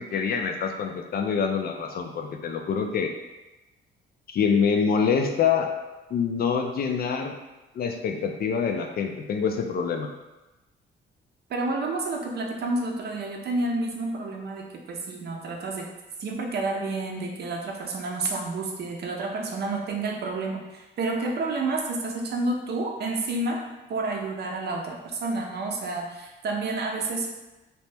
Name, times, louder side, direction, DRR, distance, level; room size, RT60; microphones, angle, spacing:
voice 1, 0.0-3.1 4.3-5.7 6.1-7.4 7.8-10.1, left 6 dB, 50° left, 4 dB, 0.4 m, -25 dB
voice 2, 11.5-15.9 16.2-23.6 23.9-27.3, right 2 dB, 55° right, 1 dB, 0.6 m, -29 dB
2.8 x 2.1 x 3.3 m, 1.1 s
cardioid pair, 90°, 20 cm